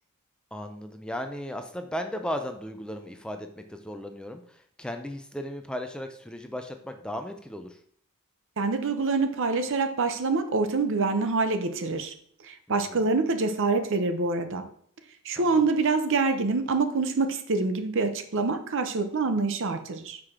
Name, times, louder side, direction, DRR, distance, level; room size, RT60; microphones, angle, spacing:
voice 1, 0.5-7.8 12.9-13.1 15.5-15.6, equal, 5° left, 6 dB, 0.4 m, -36 dB
voice 2, 8.6-12.1 12.4-14.7 15.2-20.2, right 3 dB, 60° right, 8 dB, 0.7 m, -26 dB
5.9 x 4.9 x 3.6 m, 0.62 s
head